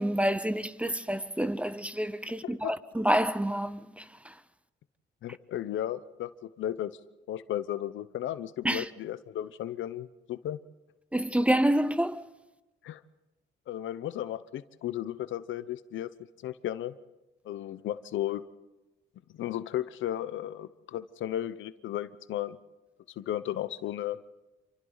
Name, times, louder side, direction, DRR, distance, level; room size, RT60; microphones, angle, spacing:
voice 1, 0.0-4.3 8.6-8.9 11.1-12.2, right 1 dB, 5° right, 0.8 m, -28 dB
voice 2, 5.2-7.0 7.3-10.6 12.8-13.0 13.7-16.1 16.4-16.9 17.4-18.4 19.3-22.6 23.2-24.2, left 12 dB, 75° left, 0.9 m, -34 dB
27.5 x 24.5 x 4.0 m
cardioid pair, 90°, 20 cm